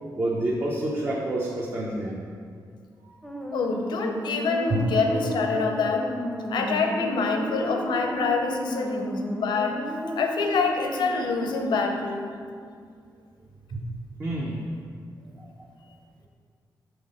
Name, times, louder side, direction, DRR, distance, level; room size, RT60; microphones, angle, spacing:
voice 1, 0.2-2.2 4.7-4.8 13.7-13.8 14.2-14.6 15.4-15.5, right 1 dB, 35° right, -4 dB, 0.7 m, -28 dB
sound 1, 3.2-12.2, equal, 5° left, 0.7 m, -33 dB
voice 2, 3.5-6.1 6.5-9.8 10.2-12.2, left 4 dB, 90° left, 3 dB, 0.6 m, -26 dB
5.9 x 3.9 x 5.3 m, 2.2 s
wide cardioid pair, 120°, 8 cm